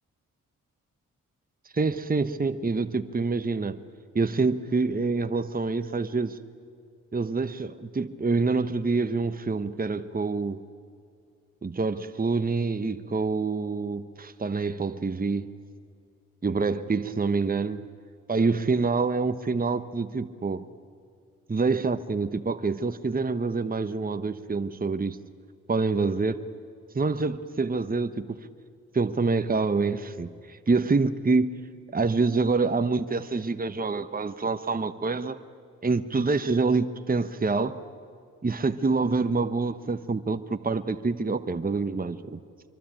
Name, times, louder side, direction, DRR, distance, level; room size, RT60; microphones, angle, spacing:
voice 1, 1.7-3.8 4.1-6.4 7.1-10.6 11.6-15.5 16.4-17.8 18.3-20.6 21.5-25.2 25.7-26.4 26.9-28.4 28.9-31.5 31.9-35.4 35.8-37.8 38.4-42.4, right 4 dB, 25° right, 1.1 m, -26 dB
25.0 x 23.5 x 9.1 m
supercardioid pair, 45°, 34 cm